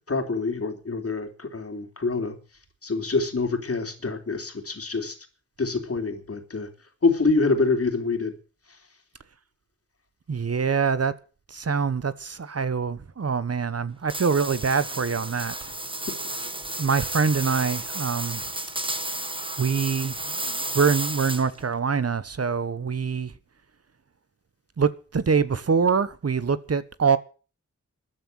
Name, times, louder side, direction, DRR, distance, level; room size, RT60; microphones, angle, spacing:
voice 1, 0.1-2.4 2.8-5.2 5.6-6.7 7.0-8.3 16.1-16.2, left 3 dB, 50° left, 3.4 m, -26 dB
voice 2, 10.3-11.1 11.5-15.7 16.8-18.4 19.6-23.3 24.8-27.2, right 5 dB, 55° right, 1.1 m, -25 dB
sound 1, 14.1-21.6, right 2 dB, 15° right, 1.6 m, -32 dB
13.5 x 9.5 x 9.0 m
wide cardioid pair, 75°, 30 cm